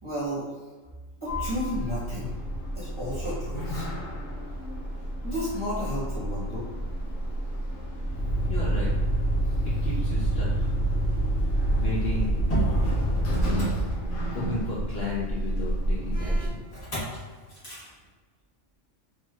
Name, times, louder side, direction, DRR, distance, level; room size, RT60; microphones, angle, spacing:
voice 1, 0.0-0.5 1.2-2.4 2.7-3.9 5.2-6.7 9.4-9.5, left 1 dB, 25° right, -10 dB, 0.9 m, -32 dB
Sliding door, 1.3-16.5, right 1 dB, 75° left, 1.1 m, -32 dB
Motor vehicle (road), 8.1-14.5 16.7-17.2 17.5-17.9, right 1 dB, 30° left, 1.0 m, -26 dB
voice 2, 8.5-8.9 9.8-10.5 11.7-12.3 14.3-16.6, left 3 dB, 60° left, -7 dB, 0.8 m, -33 dB
3.1 x 2.6 x 2.3 m, 1.3 s
omnidirectional pair, 1.4 m